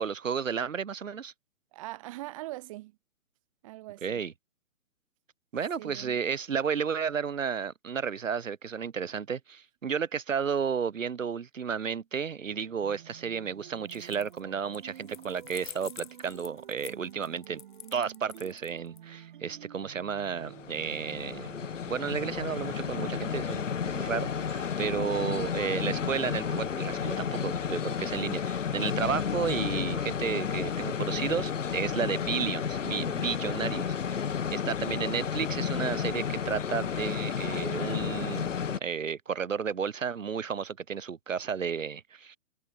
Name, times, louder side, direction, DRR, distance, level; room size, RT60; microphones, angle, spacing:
voice 1, 0.0-1.3 4.0-4.3 5.5-17.6 17.9-21.5 21.9-23.7 23.9-34.2 34.5-38.5 38.8-42.4, right 6 dB, 90° right, 2.1 m, -32 dB
voice 2, 1.7-3.0 3.6-4.2 5.8-6.2 24.8-25.2, right 18 dB, 25° right, 2.5 m, -42 dB
sound 1, 12.4-27.9, right 10 dB, 40° right, 2.8 m, -50 dB
sound 2, 13.8-14.4 14.7-19.0, left 11 dB, 40° left, 1.6 m, -47 dB
sound 3, 20.4-38.8, left 7 dB, 75° left, 2.3 m, -32 dB
hypercardioid pair, 165°, 38 cm